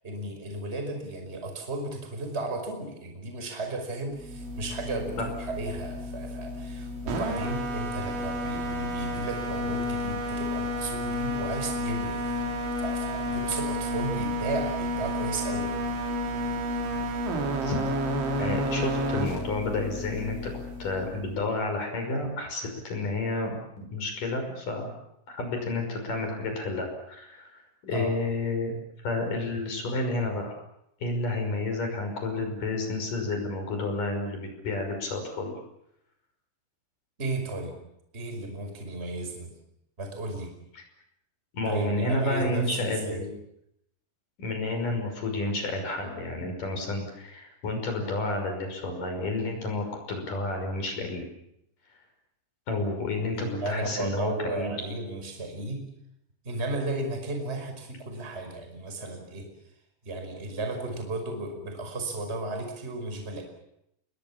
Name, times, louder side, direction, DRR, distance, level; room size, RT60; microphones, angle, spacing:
voice 1, 0.0-12.2 12.8-15.7 27.9-28.1 37.2-37.8 38.1-39.5 40.0-40.5 41.6-43.2 53.3-55.9 56.4-59.5 60.0-63.4, right 2 dB, 10° right, 4 dB, 5.0 m, -34 dB
sound 1, 4.2-21.4, equal, 65° right, 5.4 m, -31 dB
voice 2, 17.6-25.0 25.3-28.7 29.0-30.5 31.0-35.5 40.7-40.8 41.5-43.3 44.4-51.2 52.7-54.7, left 2 dB, 40° left, 4 dB, 7.1 m, -30 dB
29.0 x 22.5 x 7.4 m, 0.79 s
omnidirectional pair, 5.9 m